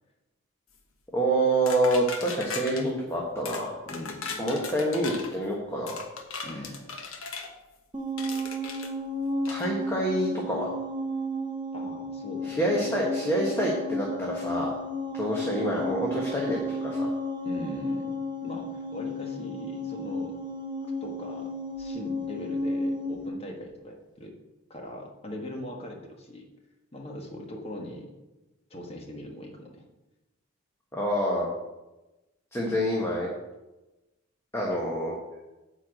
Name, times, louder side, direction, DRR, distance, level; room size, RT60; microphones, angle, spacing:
voice 1, 1.1-3.8 4.4-6.0 6.4-6.5 9.5-10.7 12.5-14.7 15.1-17.1 30.9-31.5 32.5-33.3 34.5-35.1, right 1 dB, 10° left, -3 dB, 1.3 m, -27 dB
sound 1, 1.7-2.8 3.4-3.6 3.9-5.3 5.9-7.5 8.2-8.9 9.4-9.7, left 4 dB, 85° left, 1.3 m, -37 dB
voice 2, 3.9-4.4 6.4-6.9 11.7-12.9 17.4-20.3 21.0-21.5 21.8-24.3 24.7-26.5 26.9-28.1 28.7-29.8, left 1 dB, 30° left, 1 dB, 1.5 m, -40 dB
sound 2, 7.9-23.3, left 1 dB, 20° right, 0.8 m, -33 dB
9.6 x 4.6 x 7.7 m, 1.0 s
head